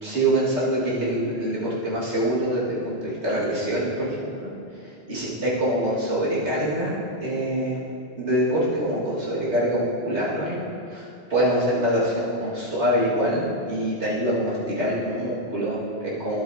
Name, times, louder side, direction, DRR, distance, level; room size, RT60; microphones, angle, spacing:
voice 1, 0.0-4.5 4.8-7.8 8.2-10.6 10.9-16.4, right 1 dB, 80° right, -7 dB, 2.3 m, -25 dB
11.0 x 8.2 x 2.8 m, 2.6 s
omnidirectional pair, 1.1 m